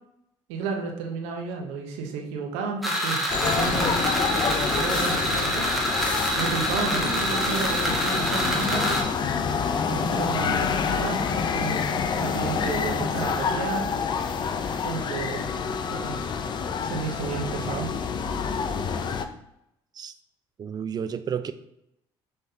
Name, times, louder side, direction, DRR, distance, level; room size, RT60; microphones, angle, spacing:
voice 1, 0.5-5.7 6.4-9.0 9.8-13.9 14.8-15.4 15.9-16.2 16.8-17.9, right 5 dB, 90° right, 2 dB, 0.7 m, -32 dB
sound 1, 2.8-9.0, equal, ahead, 1.2 m, -26 dB
sound 2, 3.3-19.3, left 6 dB, 45° left, 0.4 m, -27 dB
voice 2, 12.5-13.5 20.0-20.1 20.6-21.5, right 7 dB, 40° right, 11 dB, 0.4 m, -33 dB
5.4 x 3.4 x 2.7 m, 0.80 s
supercardioid pair, 85°, 11 cm